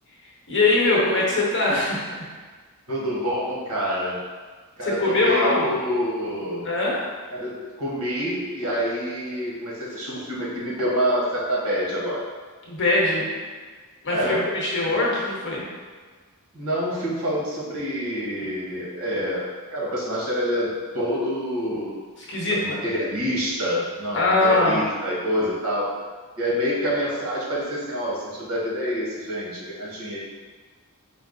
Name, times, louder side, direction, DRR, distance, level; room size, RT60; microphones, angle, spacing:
voice 1, 0.5-2.3 4.8-5.7 6.6-7.0 12.7-13.4 14.0-15.6 22.3-22.8 24.1-24.8, left 2 dB, 55° left, -4 dB, 1.0 m, -22 dB
voice 2, 2.9-4.2 4.8-6.7 7.3-12.3 14.1-14.5 14.9-15.0 16.5-20.7 20.9-22.0 22.5-25.9 26.4-30.2, equal, 70° right, -5 dB, 1.1 m, -27 dB
4.5 x 2.0 x 3.7 m, 1.5 s
head